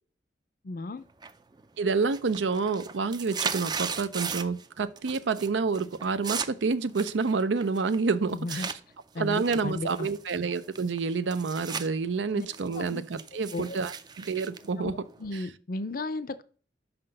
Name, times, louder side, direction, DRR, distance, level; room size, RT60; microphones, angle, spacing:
voice 1, 0.6-1.1 8.3-8.7 9.1-10.1 12.3-12.5 12.7-13.0 13.5-13.8 14.8-14.9 15.2-16.4, left 2 dB, 50° left, 0.5 m, -34 dB
sound 1, 1.2-1.6 1.9-4.7 5.0-5.5 5.7-8.8 9.3-11.9 12.2-15.4, right 6 dB, 25° right, 0.4 m, -37 dB
voice 2, 1.8-8.7 9.2-14.9, right 4 dB, 85° right, 0.5 m, -28 dB
5.8 x 5.6 x 6.5 m
head